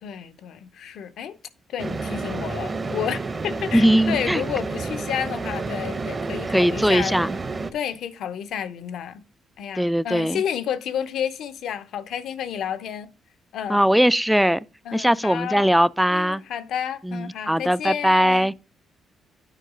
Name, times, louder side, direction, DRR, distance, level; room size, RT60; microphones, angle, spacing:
voice 1, 0.0-1.4 1.7-7.2 7.7-9.2 9.6-13.1 13.5-13.8 14.8-15.7 16.1-18.5, left 9 dB, 75° left, 0.8 m, -31 dB
sound 1, 1.8-7.7, right 3 dB, 30° right, 0.8 m, -30 dB
voice 2, 3.7-4.4 6.5-7.3 9.8-10.4 13.7-14.6 14.9-16.4 17.0-18.5, equal, ahead, 0.3 m, -20 dB
9.2 x 4.6 x 4.9 m
cardioid pair, 90°, 0 cm